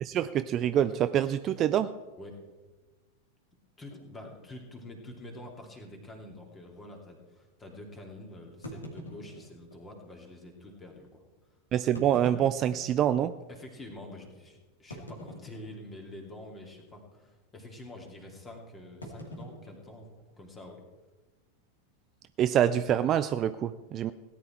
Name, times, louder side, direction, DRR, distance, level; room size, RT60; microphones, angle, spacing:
voice 1, 0.0-1.9 11.7-13.3 22.4-24.1, right 10 dB, 30° right, 12 dB, 0.4 m, -26 dB
voice 2, 3.8-11.2 13.5-20.8, left 1 dB, 15° left, 2 dB, 2.7 m, -47 dB
sound 1, 3.9-4.1 4.8-4.9 5.2-5.3 5.9-6.1 8.6-9.8 10.7-10.8 11.8-13.2 13.7-13.8 14.9-16.0 16.3-16.6 16.9-17.2 19.0-20.6, equal, 75° left, 2.6 m, -45 dB
17.5 x 10.5 x 4.5 m, 1.2 s
figure-of-eight pair, 90°, 0 cm